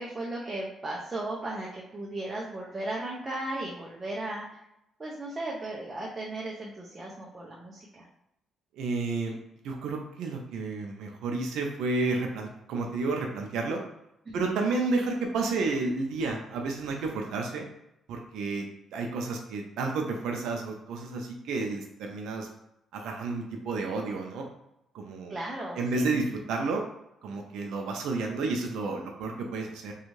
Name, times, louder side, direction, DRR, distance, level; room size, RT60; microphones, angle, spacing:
voice 1, 0.0-4.6 5.0-8.0 14.3-14.4 25.3-26.2, right 2 dB, 25° right, -4 dB, 0.5 m, -36 dB
voice 2, 8.7-9.4 9.6-13.8 14.3-17.6 18.1-18.6 18.9-22.5 22.9-24.5 24.9-25.4 25.8-26.8 27.2-29.9, right 3 dB, 85° right, 2 dB, 0.4 m, -31 dB
2.5 x 2.3 x 3.1 m, 0.83 s
cardioid pair, 90°, 0 cm